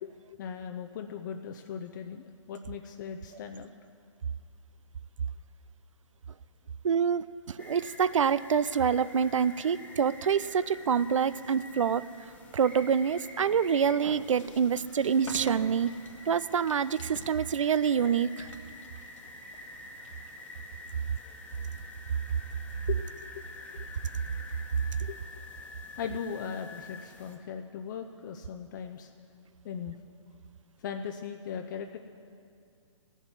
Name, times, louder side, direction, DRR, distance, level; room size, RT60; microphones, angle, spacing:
voice 1, 0.0-3.7 22.9-23.4 23.7-23.9 25.0-25.2 25.6-25.7 26.0-29.1 29.6-30.0 30.8-32.0, left 7 dB, 40° left, 5 dB, 0.7 m, -39 dB
voice 2, 6.8-12.0 12.5-15.9 16.3-18.5, right 7 dB, 80° right, 17 dB, 0.5 m, -26 dB
sound 1, 7.6-27.4, left 2 dB, 10° left, 1.2 m, -48 dB
sound 2, 12.5-21.2, left 3 dB, 75° left, 1.8 m, -51 dB
15.0 x 7.3 x 9.8 m, 2.4 s
hypercardioid pair, 145°, 16 cm